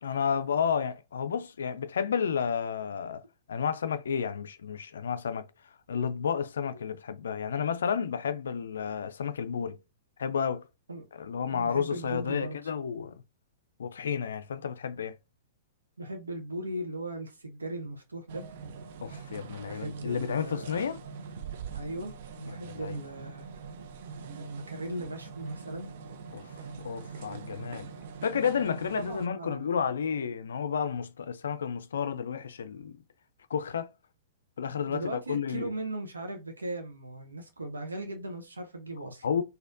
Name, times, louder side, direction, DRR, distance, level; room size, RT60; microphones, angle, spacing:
voice 1, 0.0-3.2 3.5-5.5 5.9-9.8 10.2-10.7 11.1-13.2 13.8-15.2 19.0-21.0 22.5-23.0 26.3-27.9 28.2-33.0 33.5-33.9 34.6-35.7 39.2-39.4, left 7 dB, 70° left, 0.3 m, -31 dB
voice 2, 11.4-12.7 16.0-18.4 19.5-20.8 21.7-23.5 24.3-25.9 28.9-29.7 34.9-39.3, right 1 dB, 80° right, 0.8 m, -38 dB
sound 1, 18.3-29.3, right 6 dB, 55° right, 0.5 m, -43 dB
4.1 x 2.6 x 2.5 m
figure-of-eight pair, 110°, 0 cm